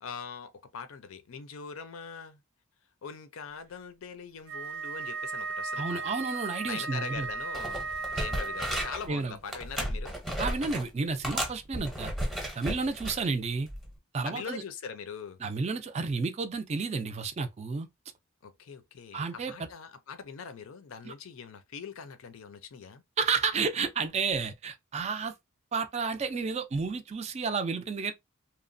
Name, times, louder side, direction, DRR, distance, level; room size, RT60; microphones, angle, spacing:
voice 1, 0.0-2.4 3.0-6.1 6.6-10.2 14.2-15.4 18.4-23.0, left 6 dB, 75° left, 0.5 m, -42 dB
Wind instrument woodwind instrument, 4.5-9.2, right 4 dB, 80° right, 0.5 m, -36 dB
voice 2, 5.8-7.3 9.1-9.4 10.4-12.1 12.6-13.7 14.1-14.6 15.4-17.9 19.1-19.7 21.0-21.1 23.2-25.3 25.7-28.1, right 4 dB, 30° right, 0.3 m, -31 dB
sound 1, 7.1-7.3 7.5-9.1 9.5-10.9 11.2-13.2 13.7-13.9, equal, ahead, 0.7 m, -34 dB
2.9 x 2.0 x 2.5 m
head